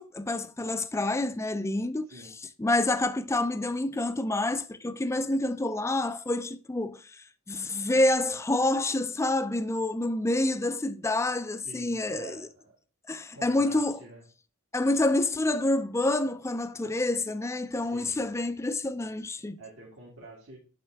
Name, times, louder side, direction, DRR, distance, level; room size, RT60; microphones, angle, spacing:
voice 1, 0.0-2.1 2.6-12.5 13.1-14.0 14.7-19.6, left 2 dB, 15° left, 0.4 m, -28 dB
voice 2, 11.6-12.8 13.3-14.2 17.8-18.2 19.6-20.6, right 2 dB, 65° right, 2.0 m, -47 dB
7.7 x 3.7 x 4.5 m
head